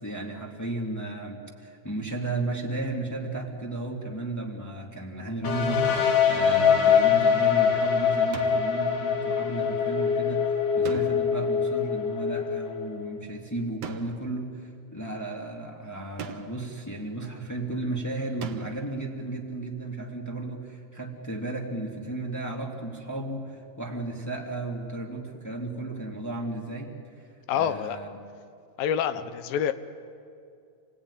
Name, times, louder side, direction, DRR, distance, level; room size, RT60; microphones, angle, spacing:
voice 1, 0.0-10.5 10.7-28.2, right 2 dB, 5° left, -1 dB, 1.6 m, -34 dB
sound 1, 5.4-13.2, left 7 dB, 65° left, 3.0 m, -24 dB
sound 2, 8.3-8.8 10.8-11.5 13.8-14.4 16.2-16.7 18.4-18.9, right 7 dB, 60° right, 1.9 m, -40 dB
voice 2, 27.5-28.0 28.8-29.7, left 9 dB, 85° left, 12 dB, 2.7 m, -27 dB
28.0 x 18.0 x 9.8 m, 2.4 s
omnidirectional pair, 4.0 m